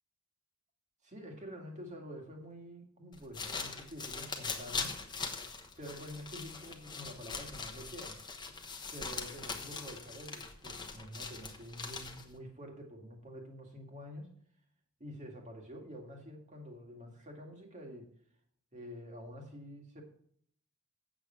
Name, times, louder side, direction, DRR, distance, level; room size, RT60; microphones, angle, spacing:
voice 1, 1.0-4.9 5.8-8.2 8.9-14.3 15.0-18.1 18.7-20.0, equal, 35° right, 2 dB, 2.1 m, -48 dB
sound 1, 3.1-12.4, left 4 dB, 20° left, 1.1 m, -42 dB
8.6 x 7.6 x 5.7 m, 0.63 s
head